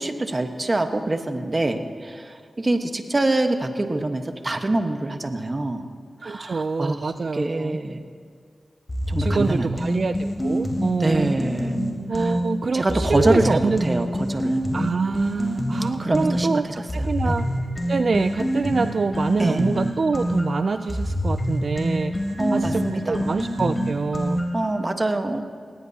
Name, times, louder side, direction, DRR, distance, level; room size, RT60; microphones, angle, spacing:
voice 1, 0.0-5.9 6.2-7.0 7.3-8.0 9.1-9.7 11.0-11.8 12.1-12.3 12.7-14.6 16.0-16.6 17.2-17.3 19.4-19.6 22.4-23.3 24.5-25.5, right 2 dB, 35° right, 6 dB, 1.2 m, -25 dB
voice 2, 6.2-7.8 9.2-11.4 12.1-13.8 14.7-17.5 17.9-22.1 22.5-24.4, right 4 dB, 60° right, 11 dB, 0.3 m, -25 dB
sound 1, 8.9-12.4 12.9-16.4 16.9-24.7, equal, 30° left, 3.3 m, -26 dB
19.0 x 18.0 x 2.8 m, 2.1 s
cardioid pair, 60°, 0 cm